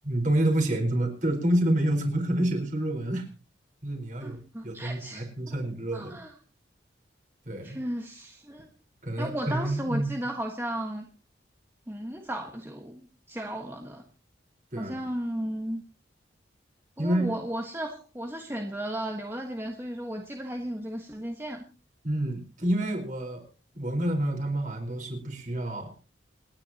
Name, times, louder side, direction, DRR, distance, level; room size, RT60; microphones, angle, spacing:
voice 1, 0.0-3.3 3.8-6.1 7.5-7.8 9.0-10.3 14.7-14.9 17.0-17.3 22.0-23.4 23.7-25.9, right 1 dB, 40° right, 3 dB, 4.5 m, -28 dB
voice 2, 4.2-5.3 5.9-6.3 7.6-8.7 9.2-11.1 11.9-14.0 14.8-15.8 17.0-21.6, right 1 dB, 10° right, 2 dB, 1.4 m, -35 dB
28.0 x 10.5 x 2.9 m, 0.32 s
head